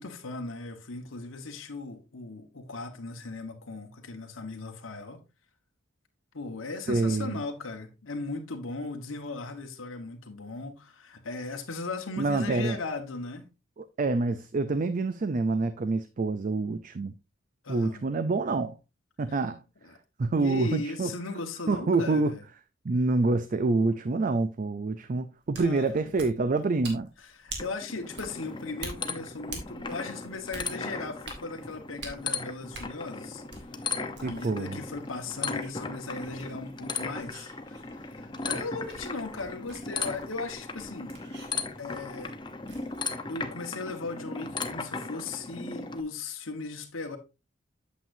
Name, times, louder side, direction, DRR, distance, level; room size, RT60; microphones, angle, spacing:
voice 1, 0.0-5.2 6.3-13.5 17.6-18.0 19.8-20.0 20.4-22.4 25.6-26.1 27.2-33.4 34.2-41.1 41.8-42.3 43.3-47.2, left 3 dB, 90° left, 1.3 m, -38 dB
voice 2, 6.9-7.4 12.2-12.8 13.8-17.1 17.7-18.8 19.2-19.6 20.2-21.1 21.7-22.3 22.8-27.1 34.2-34.8, right 3 dB, 40° right, 0.4 m, -27 dB
sound 1, 25.4-43.0, right 3 dB, 55° right, 2.0 m, -47 dB
sound 2, 27.6-46.0, left 4 dB, 25° left, 0.7 m, -37 dB
8.5 x 7.3 x 2.6 m
head